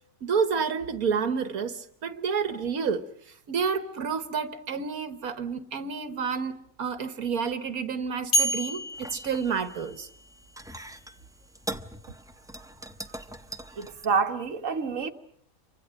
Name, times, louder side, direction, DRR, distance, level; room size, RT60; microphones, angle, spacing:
voice 1, 0.2-3.0 3.5-10.1, right 6 dB, 80° right, 1.7 m, -29 dB
sound 1, 8.3-10.4, right 1 dB, 55° left, 2.4 m, -29 dB
sound 2, 8.9-14.0, right 1 dB, 5° right, 0.8 m, -42 dB
voice 2, 13.7-15.1, right 5 dB, 65° right, 1.6 m, -27 dB
28.5 x 25.0 x 6.4 m
omnidirectional pair, 1.5 m